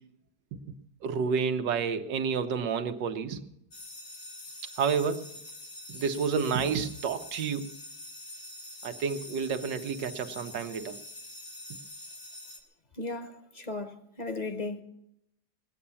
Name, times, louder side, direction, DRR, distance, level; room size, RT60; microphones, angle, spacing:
voice 1, 1.0-3.4 4.8-5.3 5.9-7.7 8.8-11.0, right 6 dB, 90° right, 1.6 m, -30 dB
sound 1, 3.7-12.6, left 1 dB, 80° left, 2.6 m, -45 dB
voice 2, 13.0-14.8, left 3 dB, 30° left, 0.8 m, -36 dB
20.0 x 8.7 x 6.9 m
omnidirectional pair, 1.8 m